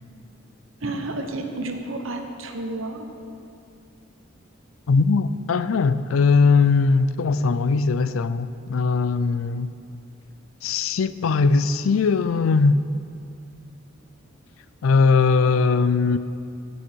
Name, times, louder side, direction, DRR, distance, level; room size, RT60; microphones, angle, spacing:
voice 1, 0.8-3.1, right 2 dB, 75° right, 1.1 m, -31 dB
voice 2, 4.9-9.7 10.6-12.8 14.8-16.2, left 4 dB, 85° left, 0.4 m, -20 dB
16.5 x 6.3 x 4.6 m
head